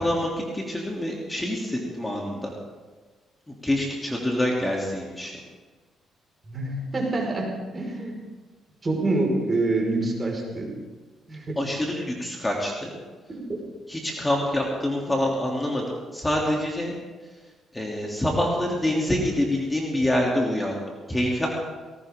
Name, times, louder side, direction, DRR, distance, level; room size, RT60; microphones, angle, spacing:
voice 1, 0.0-2.5 3.5-5.3 11.6-12.9 13.9-16.9 17.7-20.8 21.1-21.5, left 1 dB, 15° left, -2 dB, 3.2 m, -26 dB
voice 2, 6.5-8.2 8.8-10.7 11.3-11.6 13.3-13.6, right 2 dB, 30° right, 0 dB, 5.4 m, -26 dB
19.5 x 18.5 x 3.8 m, 1.3 s
cardioid pair, 90°, 0 cm